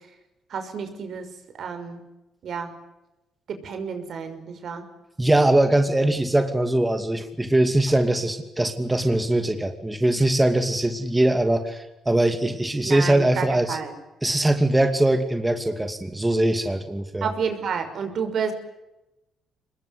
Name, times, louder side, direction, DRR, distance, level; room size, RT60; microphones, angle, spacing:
voice 1, 0.5-1.3 1.6-2.0 2.4-2.7 3.5-4.8 12.8-13.9 17.2-18.5, right 6 dB, 60° right, 8 dB, 5.9 m, -30 dB
voice 2, 5.2-13.8 14.2-17.3, right 1 dB, 10° right, 7 dB, 2.5 m, -21 dB
25.0 x 21.5 x 9.8 m, 0.96 s
cardioid pair, 90°, 0 cm